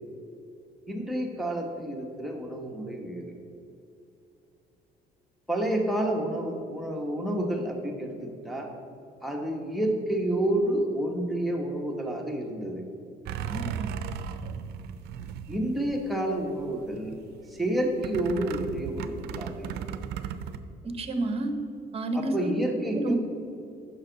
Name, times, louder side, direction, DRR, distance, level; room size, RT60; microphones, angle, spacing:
voice 1, 0.9-3.2 5.5-8.7 9.2-12.8 15.5-17.1 17.5-19.8 22.1-23.1, right 1 dB, ahead, 1 dB, 1.3 m, -29 dB
sound 1, 13.3-16.2 16.6-17.2 18.0-20.6, right 8 dB, 75° right, 0.5 m, -35 dB
voice 2, 13.5-14.0 20.8-21.5 21.9-22.5 22.9-23.1, right 2 dB, 35° right, 8 dB, 0.9 m, -30 dB
9.4 x 6.3 x 4.0 m, 2.7 s
cardioid pair, 110°, 17 cm